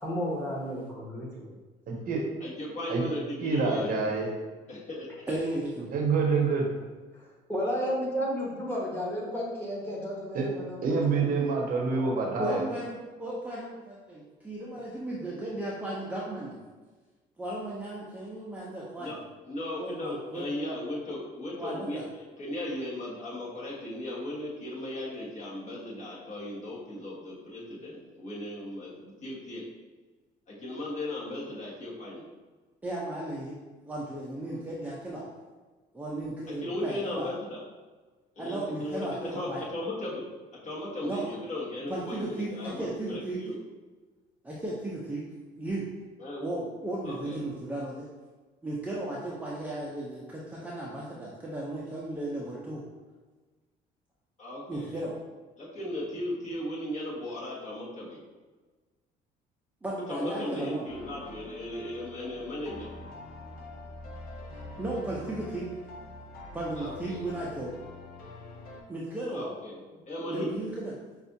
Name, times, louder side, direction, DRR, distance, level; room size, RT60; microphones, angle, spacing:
voice 1, 0.0-1.5 7.1-7.2 7.5-11.3 11.6-12.2, equal, 10° left, -5 dB, 1.3 m, -33 dB
voice 2, 1.9-2.2 2.9-3.0 3.4-4.3 5.9-6.6 10.3-10.5 10.8-12.7, right 4 dB, 55° right, 0 dB, 0.8 m, -26 dB
voice 3, 2.4-4.0 4.7-5.1 19.0-19.2 19.4-29.6 30.5-32.2 36.6-37.6 38.4-40.2 40.5-43.6 46.2-46.4 47.0-47.4 54.4-55.0 55.6-58.2 60.1-62.9 66.8-67.2 69.3-70.5, left 1 dB, 45° left, -6 dB, 1.3 m, -36 dB
voice 4, 5.3-5.9 12.4-16.6 17.4-19.2 19.8-20.5 21.6-22.0 32.8-33.5 33.8-35.2 35.9-37.3 38.4-39.6 41.0-41.3 41.9-43.4 44.4-45.2 45.5-45.9 46.4-48.1 48.6-52.8 54.7-55.2 59.8-60.8 64.8-65.7 66.5-67.7 68.9-69.5 69.9-70.0 70.3-70.9, right 1 dB, 10° right, -6 dB, 0.5 m, -35 dB
sound 1, 60.9-68.8, left 2 dB, 60° left, 0.7 m, -45 dB
5.3 x 2.4 x 2.7 m, 1.3 s
cardioid pair, 110°, 17 cm